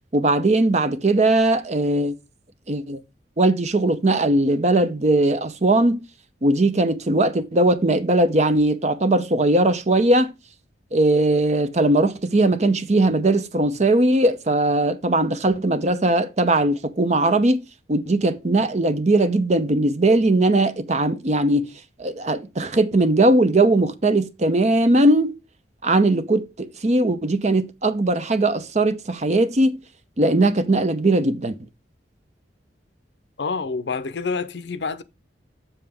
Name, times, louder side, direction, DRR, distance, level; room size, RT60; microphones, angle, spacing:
voice 1, 0.1-2.2 2.7-3.0 3.4-6.0 6.4-10.3 10.9-21.7 22.0-25.4 25.8-29.8 30.2-31.5, right 2 dB, 40° right, 0.7 m, -19 dB
voice 2, 33.4-35.0, left 4 dB, 70° left, 0.6 m, -27 dB
7.1 x 6.9 x 3.5 m
head